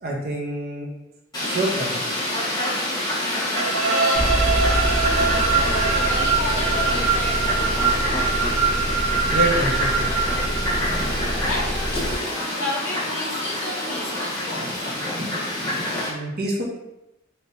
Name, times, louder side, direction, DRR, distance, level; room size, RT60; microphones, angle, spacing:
voice 1, 0.0-0.9 1.4-2.0 9.2-10.3 16.1-16.6, right 1 dB, 50° right, -1 dB, 0.7 m, -27 dB
Fowl, 1.3-16.1, left 1 dB, 20° left, 1.2 m, -27 dB
voice 2, 3.2-8.0 11.4-11.8 12.5-14.9, left 2 dB, 65° left, -3 dB, 0.6 m, -33 dB
sound 1, 3.6-11.4, right 6 dB, 80° right, 0.3 m, -24 dB
sound 2, 4.1-12.1, equal, 15° right, 1.0 m, -27 dB
3.3 x 2.8 x 2.7 m, 0.91 s
head